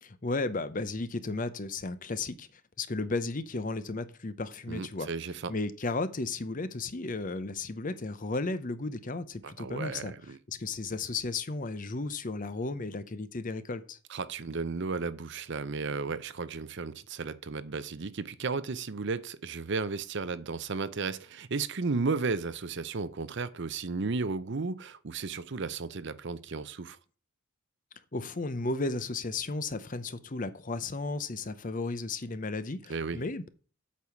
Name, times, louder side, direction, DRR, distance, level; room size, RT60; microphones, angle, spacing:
voice 1, 0.0-5.1 5.5-10.1 10.5-14.0 28.1-33.5, left 3 dB, 40° left, 0.7 m, -34 dB
voice 2, 4.7-5.5 9.4-10.4 14.1-27.0 32.9-33.2, right 4 dB, 55° right, 0.6 m, -34 dB
8.5 x 4.8 x 7.2 m
head